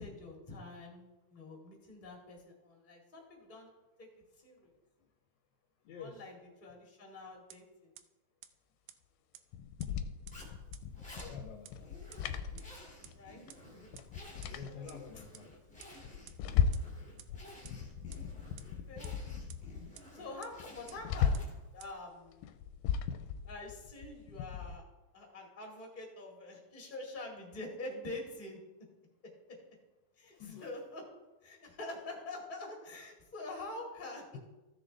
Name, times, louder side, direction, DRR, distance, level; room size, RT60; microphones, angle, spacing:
voice 1, 0.0-3.7 4.0-4.1 4.4-4.7 6.0-7.9 13.1-13.4 14.6-14.9 18.0-18.4 18.9-19.1 20.1-21.4 21.7-22.5 23.5-24.8 25.1-28.6 30.2-31.1 31.4-34.4, left 2 dB, 20° left, -1 dB, 1.7 m, -46 dB
voice 2, 5.9-6.2 11.2-11.9 14.5-15.5 30.2-30.7, left 6 dB, 75° left, 2 dB, 1.9 m, -48 dB
sound 1, 7.5-7.6 8.0-8.1 8.4-8.5 8.9-9.0 9.3-9.4 9.8-9.9 10.3-10.4 10.7-10.8 11.2-11.3 11.6-11.7 12.1-12.2 12.6-12.7 13.0-13.1 13.5-13.6 14.0-14.1 14.4-14.5 14.9-15.0 15.3-15.4 15.8-15.9 16.3-16.4 16.7-16.8 17.2-17.3 17.6-17.7 18.1-18.2 18.6-18.7 19.0-19.1 19.5-19.6 19.9-20.0 20.4-20.5 20.9-21.0 21.3-21.4 21.8-21.9, right 13 dB, 80° right, 1.9 m, -51 dB
sound 2, 9.5-13.2 13.5-13.6 13.9-15.2 15.7-17.0 17.3-19.9 20.2-20.3 20.6-21.7 22.3-24.8, left 7 dB, 90° left, 2.1 m, -36 dB
Zipper (clothing), 10.3-21.8, left 1 dB, 5° left, 1.4 m, -53 dB
15.0 x 6.7 x 3.3 m, 1.1 s
omnidirectional pair, 3.6 m